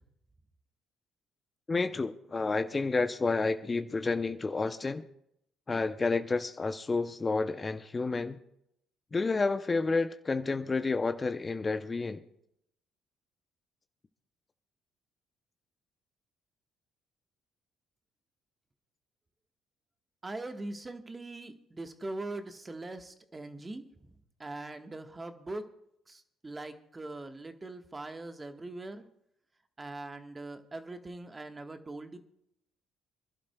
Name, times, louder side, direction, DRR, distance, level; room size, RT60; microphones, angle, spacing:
voice 1, 1.7-5.0 5.7-8.4 9.1-12.2, left 3 dB, 30° left, 0.7 m, -30 dB
voice 2, 20.2-24.1 24.4-25.7 26.1-29.0 29.8-32.2, right 2 dB, 25° right, 1.4 m, -41 dB
27.5 x 12.0 x 2.3 m
hypercardioid pair, 50°, 0 cm